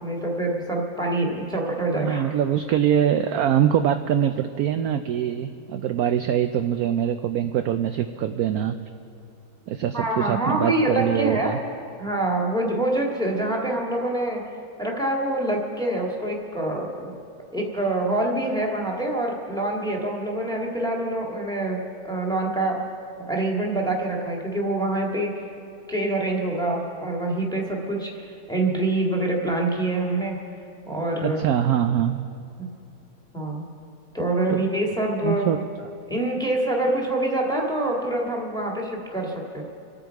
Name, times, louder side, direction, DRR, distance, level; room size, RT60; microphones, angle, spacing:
voice 1, 0.0-2.2 9.9-11.6 12.0-14.4 14.8-17.1 17.5-22.8 23.3-25.3 25.9-30.4 30.9-31.4 32.6-32.7 33.3-33.6 34.1-35.5 36.1-39.6, right 2 dB, ahead, -1 dB, 1.8 m, -25 dB
voice 2, 1.9-8.8 9.7-11.6 31.2-32.3 34.5-34.6 35.2-35.6, right 10 dB, 70° right, 9 dB, 0.9 m, -23 dB
26.0 x 9.0 x 4.7 m, 2.7 s
omnidirectional pair, 2.0 m